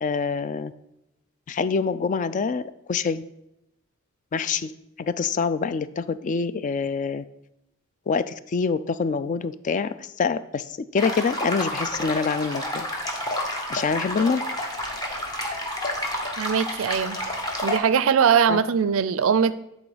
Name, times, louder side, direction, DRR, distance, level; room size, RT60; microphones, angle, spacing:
voice 1, 0.0-0.7 1.5-2.6 2.9-3.2 4.3-4.7 5.0-7.2 8.1-10.7 10.9-12.9 13.7-14.4 18.5-18.6, left 5 dB, 35° left, 14 dB, 0.3 m, -25 dB
sound 1, 11.0-17.8, left 1 dB, 20° left, 1.0 m, -30 dB
voice 2, 16.4-17.2 17.6-19.5, right 7 dB, 65° right, 15 dB, 0.4 m, -21 dB
8.4 x 4.0 x 5.0 m, 0.84 s
head